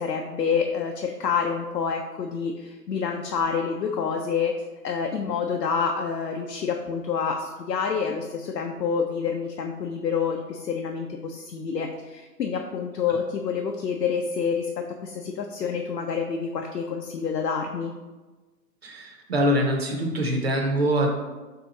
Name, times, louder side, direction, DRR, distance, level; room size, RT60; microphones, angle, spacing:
voice 1, 0.0-4.5 4.8-17.9, left 6 dB, 90° left, 2 dB, 0.6 m, -28 dB
voice 2, 18.8-21.1, equal, 40° right, 2 dB, 0.6 m, -24 dB
3.5 x 2.8 x 3.9 m, 1.2 s
hypercardioid pair, 155°, 48 cm